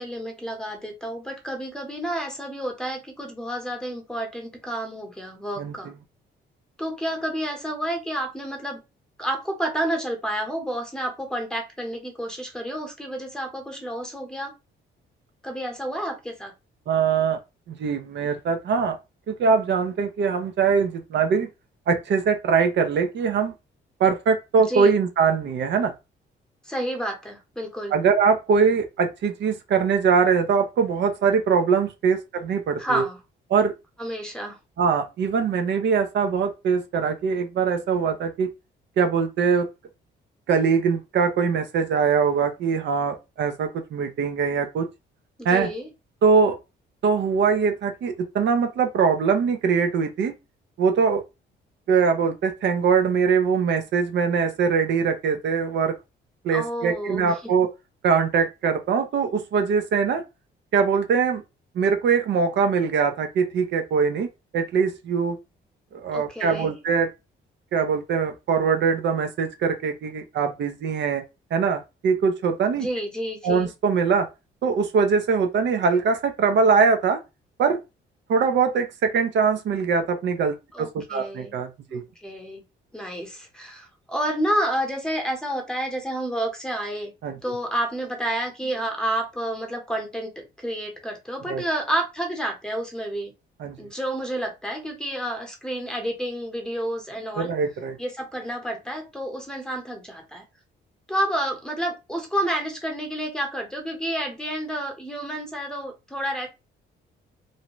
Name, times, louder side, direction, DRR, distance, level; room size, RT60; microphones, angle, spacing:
voice 1, 0.0-5.9 6.8-8.8 9.2-14.5 15.4-16.5 24.7-24.9 26.6-27.9 32.8-33.2 34.0-34.6 45.4-45.9 56.5-57.5 66.1-66.8 72.8-73.7 80.7-81.6 81.9-82.6 82.9-87.1 87.4-93.3 93.8-97.5 98.0-100.4 101.1-106.5, right 1 dB, 5° left, 0.9 m, -30 dB
voice 2, 16.9-17.4 17.7-19.0 19.3-21.5 21.9-23.5 24.0-25.9 27.9-33.0 33.5-33.7 34.8-38.5 39.0-39.7 40.5-44.9 45.4-45.7 46.2-46.6 47.0-50.3 50.8-51.2 51.9-55.9 56.4-57.7 58.0-60.2 60.7-61.4 61.7-64.3 64.5-65.4 65.9-67.1 67.7-71.2 71.5-72.9 73.4-74.3 74.6-77.2 77.6-77.8 78.3-82.0 87.2-87.4 91.5-91.6 93.6-93.8 97.4-98.0, right 5 dB, 65° right, 0.6 m, -22 dB
2.6 x 2.1 x 3.0 m
cardioid pair, 90°, 20 cm